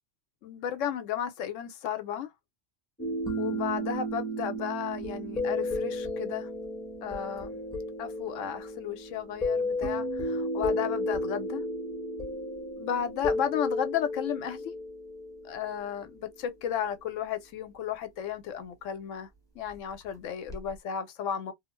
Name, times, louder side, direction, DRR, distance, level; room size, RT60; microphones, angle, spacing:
voice 1, 0.4-2.3 3.4-6.5 7.0-7.6 8.0-11.6 12.8-14.7 15.4-19.3 19.6-21.5, left 9 dB, 90° left, 1.0 m, -34 dB
sound 1, 3.0-16.2 20.5-20.7, left 1 dB, 5° left, 0.7 m, -33 dB
2.6 x 2.0 x 3.0 m
omnidirectional pair, 1.2 m